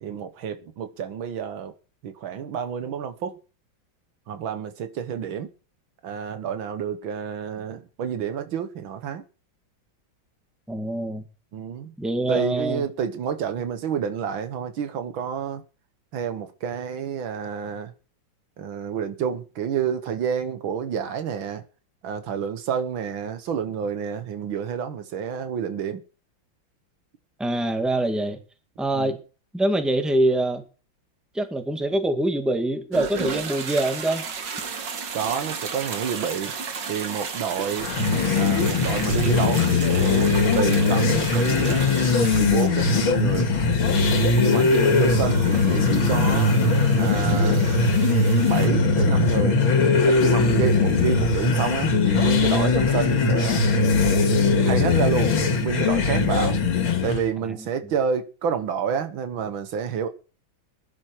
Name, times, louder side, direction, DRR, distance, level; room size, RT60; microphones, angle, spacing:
voice 1, 0.0-1.7 2.0-3.4 4.3-5.5 6.0-9.2 11.5-11.9 12.3-15.6 16.1-17.9 18.6-21.6 22.0-26.0 28.9-29.1 35.1-36.5 36.9-37.9 38.3-41.9 42.3-43.5 44.4-46.6 46.9-47.7 48.5-49.6 50.0-53.7 54.6-56.6 57.0-60.1, right 7 dB, 80° right, 1.9 m, -29 dB
voice 2, 10.7-11.2 12.0-12.9 27.4-28.4 28.8-29.2 29.5-30.6 31.3-34.3 57.5-57.6, right 1 dB, ahead, 1.7 m, -24 dB
sound 1, 32.9-48.7, right 5 dB, 60° right, 2.2 m, -34 dB
sound 2, 37.8-57.3, left 4 dB, 85° left, 2.8 m, -20 dB
20.5 x 10.5 x 4.6 m
omnidirectional pair, 2.2 m